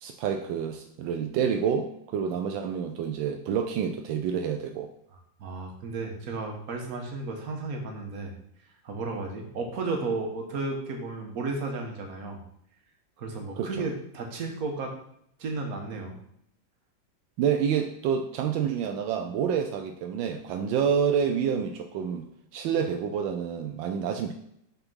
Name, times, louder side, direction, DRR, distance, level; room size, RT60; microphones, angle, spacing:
voice 1, 0.0-4.9 13.5-13.7 17.4-22.3 22.5-24.3, right 7 dB, 80° right, 5 dB, 1.3 m, -28 dB
voice 2, 5.4-8.3 8.8-12.4 13.2-14.9 15.4-16.2, right 3 dB, 50° right, 2 dB, 1.6 m, -33 dB
5.8 x 4.3 x 5.5 m, 0.73 s
omnidirectional pair, 2.1 m